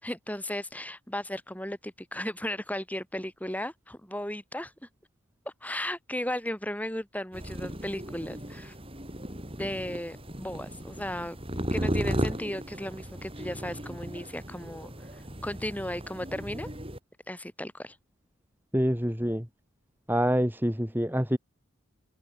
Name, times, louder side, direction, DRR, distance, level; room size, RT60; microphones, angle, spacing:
voice 1, 0.0-4.7 5.4-8.7 9.6-11.4 11.7-16.7 17.3-18.0, left 1 dB, 5° left, 6.6 m, -35 dB
sound 1, 7.3-17.0, equal, 25° right, 8.0 m, -35 dB
voice 2, 18.7-19.5 20.1-21.4, equal, 10° right, 3.1 m, -26 dB
open air
head